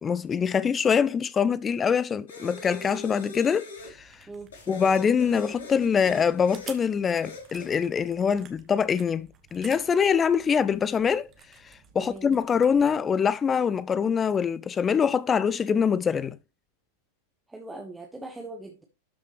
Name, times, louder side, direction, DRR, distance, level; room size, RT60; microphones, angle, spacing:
voice 1, 0.0-4.3 4.7-11.3 11.6-16.4, left 6 dB, 20° left, 0.4 m, -24 dB
improvised short melody, 2.3-4.0 4.5-6.8 7.2-7.7, left 3 dB, 65° left, 2.9 m, -42 dB
sound 1, 3.8-13.0, right 7 dB, 30° right, 1.4 m, -52 dB
voice 2, 12.0-12.3 17.5-18.8, right 2 dB, 10° right, 1.2 m, -40 dB
12.5 x 5.8 x 3.0 m
figure-of-eight pair, 90°, 0 cm